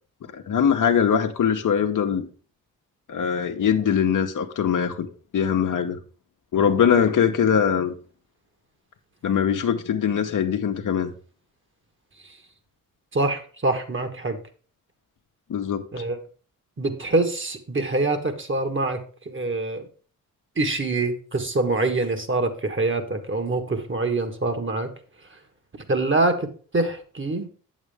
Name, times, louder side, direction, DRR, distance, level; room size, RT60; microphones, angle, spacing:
voice 1, 0.3-2.3 3.1-6.0 6.5-7.9 9.2-11.1 15.5-15.8, left 7 dB, 65° left, 1.0 m, -22 dB
voice 2, 13.1-14.4 15.9-16.2 16.8-19.0 19.2-19.9 20.6-24.9 25.9-26.5 26.7-27.5, right 2 dB, 35° right, 1.5 m, -25 dB
8.1 x 7.5 x 3.5 m
cardioid pair, 60°, 34 cm